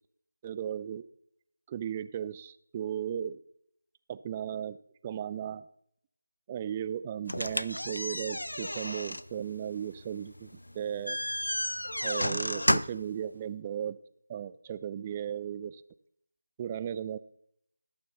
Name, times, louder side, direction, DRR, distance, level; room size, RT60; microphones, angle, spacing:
voice 1, 0.4-1.0 1.7-3.4 4.1-4.8 5.0-5.7 6.5-11.2 12.0-14.0 14.3-15.8 16.6-17.2, right 9 dB, 15° right, 14 dB, 0.3 m, -36 dB
sound 1, 7.3-13.1, left 1 dB, 75° left, 0.4 m, -32 dB
11.5 x 6.7 x 4.1 m, 0.70 s
figure-of-eight pair, 160°, 0 cm